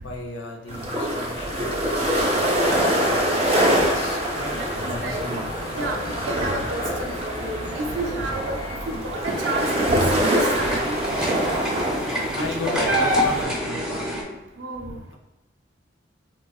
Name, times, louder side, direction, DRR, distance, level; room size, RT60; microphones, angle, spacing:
voice 1, 0.0-2.5 2.8-6.1 6.5-6.7 8.1-8.3 12.1-14.2, left 2 dB, 85° left, 1 dB, 0.6 m, -35 dB
sound 1, 0.7-13.4, right 1 dB, 35° right, 0.5 m, -25 dB
sound 2, 1.3-12.3, left 1 dB, 25° left, 0.5 m, -39 dB
voice 2, 4.5-5.2 5.7-11.6 12.5-12.6 14.6-15.2, right 2 dB, 80° right, 1 dB, 0.5 m, -31 dB
sound 3, 9.2-14.2, equal, 5° right, 0.7 m, -26 dB
3.8 x 2.1 x 2.4 m, 1.0 s
head